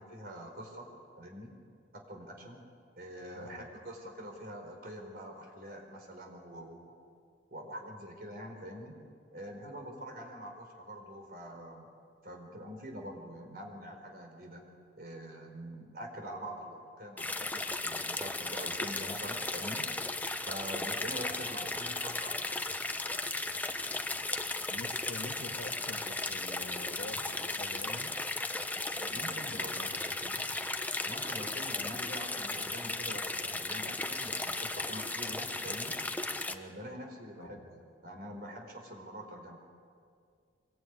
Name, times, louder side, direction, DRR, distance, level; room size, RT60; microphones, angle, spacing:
voice 1, 0.0-1.6 1.9-2.7 3.0-7.0 7.5-9.0 9.3-11.8 12.2-14.6 15.0-19.8 20.5-22.4 28.9-29.9 31.0-35.9 36.4-39.6, equal, 55° right, 2 dB, 4.3 m, -45 dB
voice 2, 3.4-3.7 21.6-21.8 24.7-28.1 29.1-30.5 37.4-37.6, left 1 dB, 70° left, 6 dB, 1.8 m, -47 dB
sound 1, 17.2-36.6, left 2 dB, 10° left, 0.9 m, -36 dB
26.0 x 22.0 x 9.6 m, 2.2 s
head